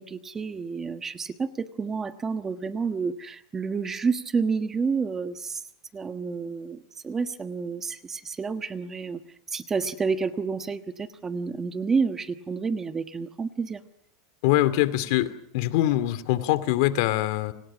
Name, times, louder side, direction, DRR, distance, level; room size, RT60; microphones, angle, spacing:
voice 1, 0.0-5.6 5.9-9.2 9.5-13.8, right 5 dB, 15° right, 9 dB, 1.3 m, -29 dB
voice 2, 14.4-17.5, left 15 dB, 60° left, 13 dB, 2.5 m, -23 dB
29.5 x 26.5 x 6.1 m, 0.68 s
supercardioid pair, 150°, 2 cm